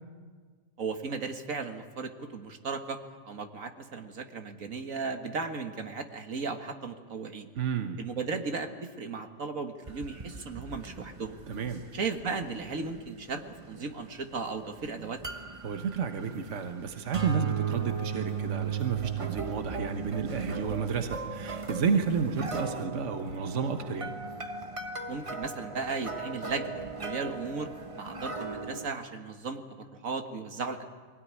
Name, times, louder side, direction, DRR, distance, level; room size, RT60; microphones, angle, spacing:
voice 1, 0.8-3.0 3.3-7.5 8.0-11.4 11.9-15.2 25.1-30.8, right 4 dB, 85° right, 6 dB, 2.0 m, -36 dB
voice 2, 7.5-8.0 11.5-11.8 15.6-24.1, right 6 dB, 65° right, 6 dB, 1.6 m, -31 dB
sound 1, 9.9-28.9, right 5 dB, 25° right, 1.0 m, -37 dB
22.5 x 18.0 x 9.7 m, 1.5 s
omnidirectional pair, 1.4 m